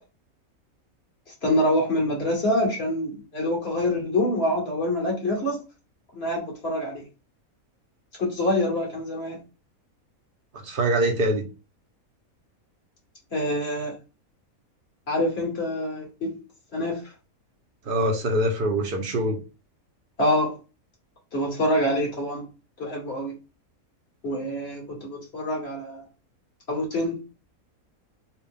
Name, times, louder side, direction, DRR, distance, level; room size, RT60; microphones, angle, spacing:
voice 1, 1.4-5.6 6.1-7.0 8.2-9.4 13.3-14.0 15.1-16.4 16.7-17.0 20.2-20.5 21.3-22.5 22.8-23.3 24.2-26.0 26.7-27.2, left 1 dB, 45° left, 1.7 m, -26 dB
voice 2, 10.5-11.5 17.9-19.4, right 1 dB, 45° right, 0.9 m, -24 dB
4.1 x 2.4 x 3.5 m
omnidirectional pair, 1.5 m